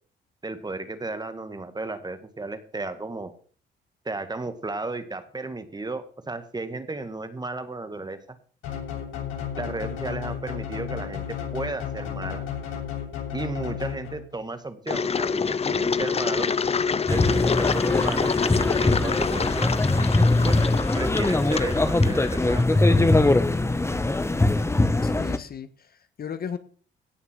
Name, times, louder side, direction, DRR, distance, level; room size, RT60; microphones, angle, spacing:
voice 1, 0.4-3.3 4.1-8.4 9.6-12.5 13.3-16.5 17.1-19.7 20.4-20.6 20.9-23.1, right 3 dB, 20° right, 10 dB, 1.9 m, -34 dB
sound 1, 8.6-14.4, left 8 dB, 90° left, 7.2 m, -33 dB
Engine, 14.9-22.6, left 5 dB, 30° left, 0.7 m, -26 dB
sound 2, 17.1-25.4, left 2 dB, 15° left, 1.2 m, -22 dB
voice 2, 25.0-26.6, left 7 dB, 50° left, 12 dB, 1.4 m, -36 dB
17.5 x 6.0 x 7.5 m, 0.43 s
cardioid pair, 90°, 20 cm